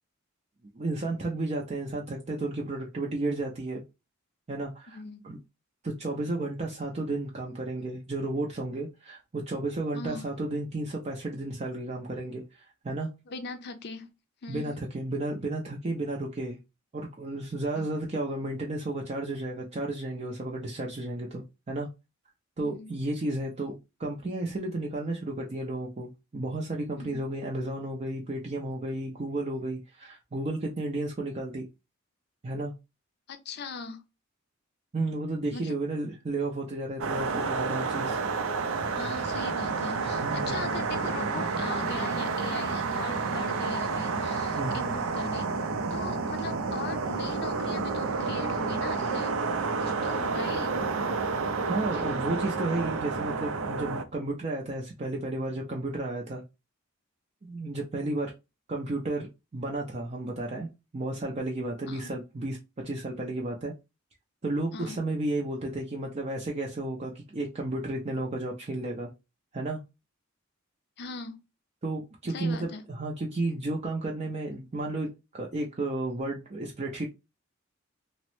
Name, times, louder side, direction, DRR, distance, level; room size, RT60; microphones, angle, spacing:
voice 1, 0.7-3.8 4.5-5.4 5.8-13.1 14.5-16.6 16.9-21.9 22.6-31.7 32.4-32.7 34.9-38.2 40.2-40.6 44.6-44.8 51.7-56.4 57.4-58.3 58.7-59.3 59.5-60.7 60.9-63.7 64.4-69.1 69.5-69.8 71.8-77.1, right 2 dB, 30° right, 0.5 m, -33 dB
voice 2, 4.9-5.2 9.9-10.3 13.3-14.1 14.4-14.8 17.8-17.9 22.6-22.9 27.0-27.2 33.3-34.0 35.5-35.8 37.2-37.5 38.9-45.5 45.9-49.4 49.8-50.8 51.9-52.3 61.9-62.1 64.7-65.0 71.0-71.4 72.3-72.8, left 4 dB, 55° left, 0.5 m, -40 dB
sound 1, 37.0-54.0, right 4 dB, 85° right, 0.5 m, -30 dB
3.0 x 2.1 x 3.0 m
head